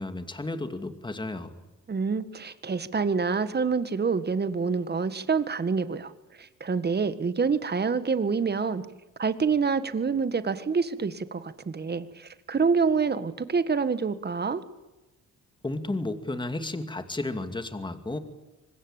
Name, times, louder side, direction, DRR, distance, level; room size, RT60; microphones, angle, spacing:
voice 1, 0.0-1.6 15.6-18.2, left 2 dB, 15° left, 8 dB, 2.5 m, -33 dB
voice 2, 1.9-6.1 6.4-8.8 9.2-14.6, right 5 dB, 35° right, 12 dB, 1.8 m, -27 dB
25.5 x 20.5 x 9.0 m, 1.1 s
cardioid pair, 90°, 30 cm